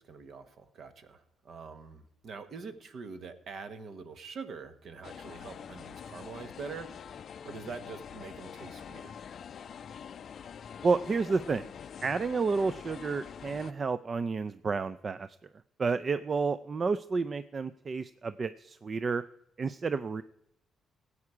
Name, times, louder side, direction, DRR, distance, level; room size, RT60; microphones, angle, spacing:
voice 1, 0.0-9.2, right 5 dB, 60° right, 10 dB, 1.3 m, -45 dB
sound 1, 5.0-13.7, left 8 dB, 55° left, 0.4 m, -45 dB
voice 2, 10.8-11.7 12.0-15.3 15.8-19.2 19.6-20.2, right 4 dB, 40° right, 14 dB, 0.4 m, -30 dB
15.0 x 8.5 x 4.9 m, 0.78 s
cardioid pair, 90°, 0 cm